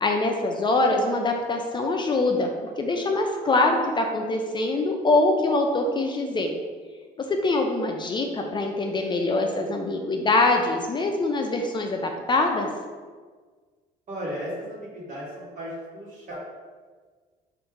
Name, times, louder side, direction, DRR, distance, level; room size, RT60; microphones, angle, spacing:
voice 1, 0.0-6.5 7.3-12.7, left 2 dB, 25° left, 3 dB, 0.4 m, -24 dB
voice 2, 14.1-16.4, equal, 50° right, -6 dB, 1.4 m, -35 dB
4.5 x 2.6 x 3.7 m, 1.5 s
cardioid pair, 110°, 17 cm